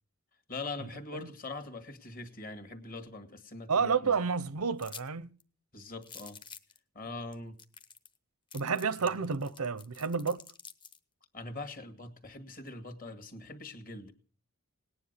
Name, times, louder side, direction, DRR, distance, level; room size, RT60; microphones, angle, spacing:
voice 1, 0.5-4.2 5.7-6.4 6.9-7.6 9.0-9.3 11.3-14.1, left 3 dB, 40° left, 2.0 m, -42 dB
voice 2, 3.7-5.3 8.5-10.4, right 5 dB, 85° right, 0.8 m, -30 dB
sound 1, 4.8-5.1 5.4-5.5 6.0-6.8 7.3-7.4 7.6-8.2 8.5-11.0, left 6 dB, 20° left, 1.0 m, -49 dB
18.5 x 10.0 x 6.8 m
head